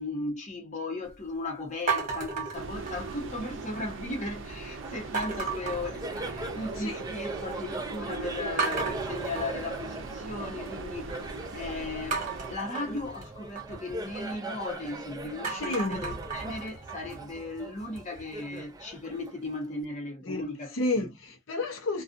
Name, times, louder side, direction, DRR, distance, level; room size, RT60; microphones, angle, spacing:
voice 1, 0.0-11.1 11.5-21.1, left 2 dB, 40° left, 1.0 m, -36 dB
sound 1, 1.9-3.4 3.7-4.3 5.1-6.7 7.0-7.6 7.9-8.0 8.6-10.7 12.1-14.9 15.3-18.2, right 4 dB, 40° right, 1.2 m, -35 dB
sound 2, 2.5-12.5, right 3 dB, 70° right, 0.5 m, -40 dB
Laughter, 4.8-19.8, right 2 dB, 20° right, 0.5 m, -41 dB
voice 2, 15.6-16.0 20.2-20.4 20.7-22.0, left 2 dB, 80° left, 0.7 m, -30 dB
2.4 x 2.4 x 2.5 m
head